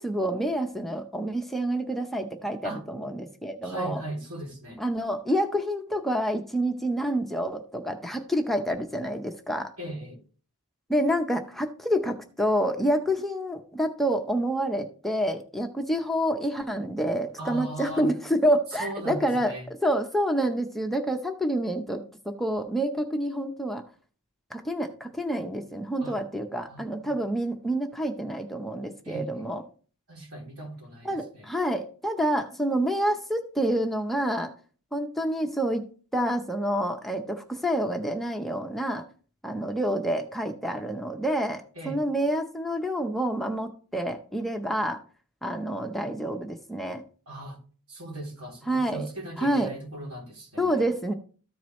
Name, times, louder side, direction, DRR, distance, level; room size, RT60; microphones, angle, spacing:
voice 1, 0.0-4.0 4.8-9.7 10.9-23.8 24.5-29.6 31.0-34.5 34.9-35.8 36.1-39.0 39.4-45.0 45.4-47.0 48.7-49.1 49.4-49.7 50.6-51.1, equal, ahead, 0.6 m, -28 dB
voice 2, 3.6-4.8 9.8-10.2 17.4-18.1 18.8-19.7 26.0-26.2 26.7-27.1 29.0-29.5 30.1-31.5 41.7-42.0 47.3-47.6 47.9-50.8, right 1 dB, 80° right, 3.1 m, -38 dB
13.5 x 4.6 x 3.1 m
head